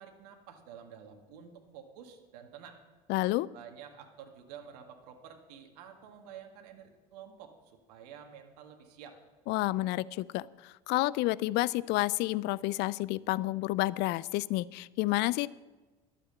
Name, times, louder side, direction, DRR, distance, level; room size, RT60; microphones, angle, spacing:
voice 1, 0.0-2.8 3.5-9.2, right 8 dB, 75° right, 5 dB, 1.8 m, -50 dB
voice 2, 3.1-3.5 9.5-15.5, left 18 dB, 55° left, 21 dB, 0.5 m, -30 dB
12.0 x 7.7 x 7.7 m, 1.2 s
hypercardioid pair, 75°, 20 cm